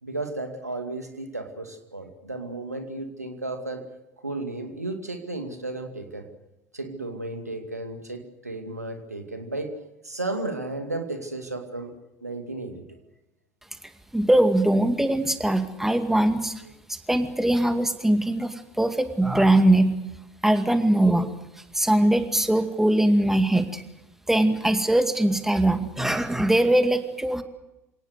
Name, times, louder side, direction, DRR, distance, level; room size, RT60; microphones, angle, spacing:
voice 1, 0.0-3.8 4.2-6.3 6.7-9.7 10.0-11.9 12.2-13.0, right 2 dB, 90° right, 6 dB, 2.4 m, -33 dB
voice 2, 14.1-16.6 16.9-19.9 20.4-21.3 21.7-23.8 24.3-27.4, right 1 dB, 5° right, 8 dB, 2.2 m, -21 dB
27.5 x 18.0 x 8.1 m, 0.96 s
figure-of-eight pair, 70°, 8 cm